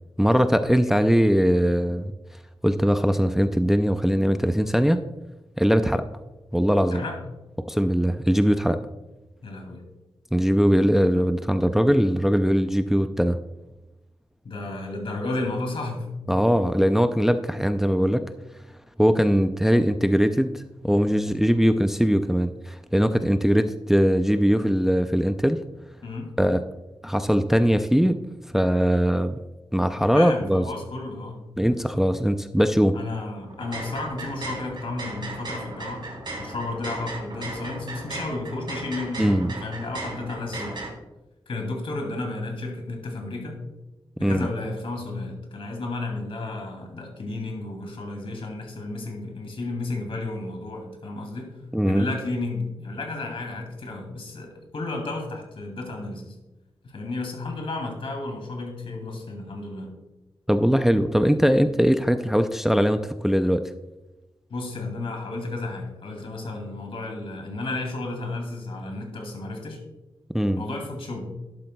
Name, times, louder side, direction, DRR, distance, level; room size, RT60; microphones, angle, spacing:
voice 1, 0.2-2.1 2.6-5.0 5.6-6.0 6.5-7.0 7.7-8.8 10.3-13.4 16.3-18.2 19.0-25.6 26.4-26.6 27.0-28.2 28.5-29.4 29.7-30.6 31.6-32.9 39.2-39.5 44.2-44.5 51.7-52.1 60.5-63.6 70.3-70.6, equal, 5° right, 9 dB, 0.4 m, -21 dB
voice 2, 6.9-7.2 9.4-9.8 14.4-16.1 26.0-26.3 30.0-31.4 32.9-36.0 36.4-40.8 41.5-43.6 44.2-51.6 51.9-56.4 56.8-59.9 64.5-69.8 70.6-71.3, left 2 dB, 70° left, 2 dB, 2.5 m, -32 dB
sound 1, 33.5-40.9, right 2 dB, 55° right, 3.3 m, -36 dB
11.5 x 11.5 x 2.3 m, 1.0 s
wide cardioid pair, 105°, 10 cm